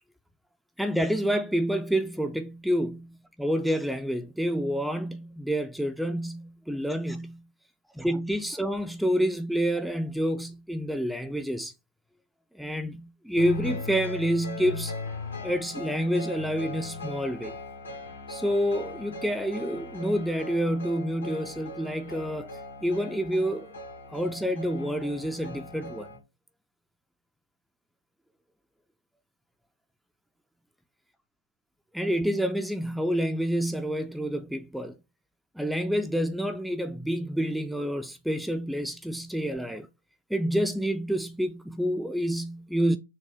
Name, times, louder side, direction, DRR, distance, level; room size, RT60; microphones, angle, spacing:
voice 1, 0.8-7.4 7.9-11.7 12.6-15.0 15.4-17.6 18.3-22.5 22.8-23.7 24.1-26.1 31.9-35.0 35.6-39.9 40.3-43.0, equal, ahead, 0.3 m, -28 dB
sound 1, 13.4-26.2, left 3 dB, 85° left, 1.6 m, -39 dB
6.4 x 2.2 x 3.4 m
figure-of-eight pair, 110°, 0 cm